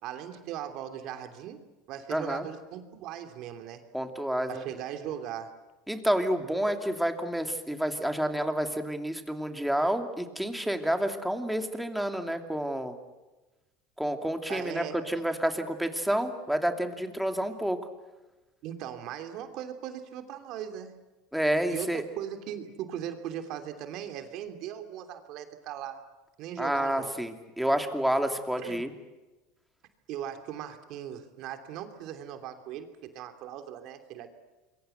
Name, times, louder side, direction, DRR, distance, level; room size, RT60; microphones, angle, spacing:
voice 1, 0.0-3.8 4.5-5.6 14.5-15.0 18.6-21.0 21.7-26.0 26.4-27.2 28.6-28.8 30.1-34.3, right 10 dB, 55° right, 7 dB, 3.0 m, -39 dB
voice 2, 2.1-2.5 3.9-4.6 5.9-13.0 14.0-17.8 21.3-22.0 26.6-28.9, right 1 dB, ahead, 5 dB, 2.7 m, -29 dB
27.5 x 23.0 x 8.0 m, 1.1 s
supercardioid pair, 115°, 0 cm